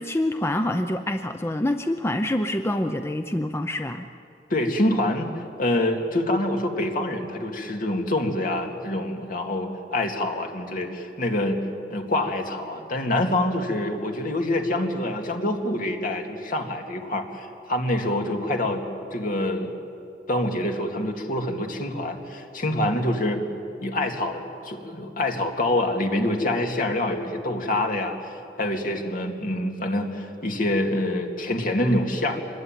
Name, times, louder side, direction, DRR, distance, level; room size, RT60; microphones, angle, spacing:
voice 1, 0.0-4.1, left 1 dB, 15° left, 7 dB, 0.6 m, -26 dB
voice 2, 4.5-5.3 5.6-11.6 11.9-18.8 19.1-19.7 20.3-23.4 23.8-28.3 28.6-32.4, left 1 dB, 50° left, 3 dB, 2.5 m, -26 dB
25.0 x 21.0 x 9.2 m, 2.6 s
head